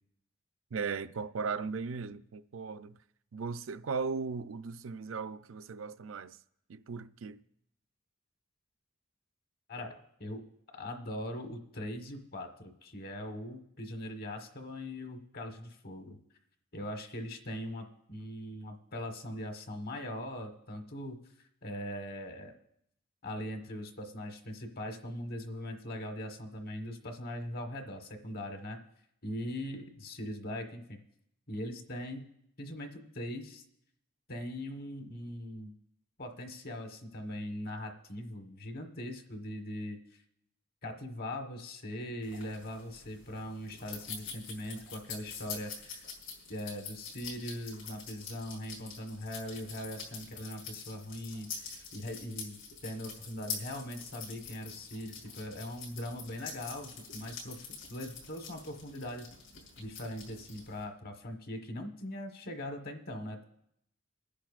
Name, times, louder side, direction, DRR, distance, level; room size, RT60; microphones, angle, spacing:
voice 1, 0.7-3.0 3.3-6.4 6.7-7.4, right 5 dB, 75° right, 0.5 m, -37 dB
voice 2, 9.7-10.4 10.7-16.2 16.7-21.2 21.6-22.5 23.2-28.8 29.2-31.0 31.5-32.3 32.6-33.6 34.3-35.7 36.2-40.0 40.8-46.0 46.5-59.3 59.8-63.4, left 1 dB, 50° left, 1.3 m, -41 dB
sound 1, 42.2-60.8, left 5 dB, 70° left, 4.9 m, -46 dB
28.0 x 10.0 x 2.5 m
head